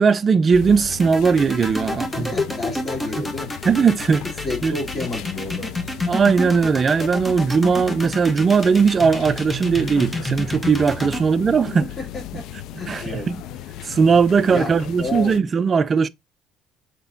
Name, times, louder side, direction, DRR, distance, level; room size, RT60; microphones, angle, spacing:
voice 1, 0.0-2.3 3.7-4.2 4.6-4.8 6.1-11.9 12.9-13.4 13.8-16.1, right 5 dB, 35° right, 0.4 m, -18 dB
sound 1, 0.5-15.4, left 11 dB, 75° left, 0.3 m, -36 dB
sound 2, 0.9-11.2, left 1 dB, 15° left, 1.0 m, -29 dB
voice 2, 2.1-3.5 4.4-5.9 12.3-12.4 12.7-13.3 14.5-14.7 15.0-15.4, left 2 dB, 30° left, 2.3 m, -30 dB
4.4 x 4.1 x 2.6 m
cardioid pair, 115°, 0 cm